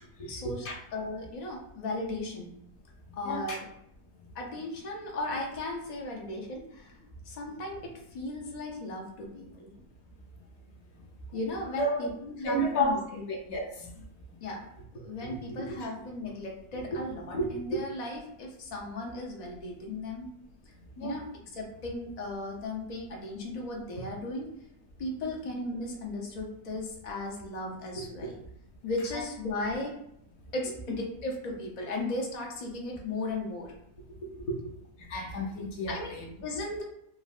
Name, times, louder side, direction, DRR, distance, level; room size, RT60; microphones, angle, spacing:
voice 1, 0.2-2.5 3.2-3.7 4.3-6.9 7.2-9.7 11.3-13.2 14.4-20.3 21.0-24.5 25.0-28.4 28.8-30.0 30.5-33.7 34.2-34.7 35.9-36.1 36.4-36.8, left 1 dB, 90° left, -1 dB, 0.3 m, -36 dB
voice 2, 3.2-3.6 11.8-12.0 12.4-12.9 13.3-13.9 15.8-15.9 21.0-21.2 29.1-29.2 35.1-36.3, left 1 dB, 60° left, 0 dB, 0.8 m, -31 dB
3.6 x 2.1 x 2.4 m, 0.75 s
omnidirectional pair, 1.6 m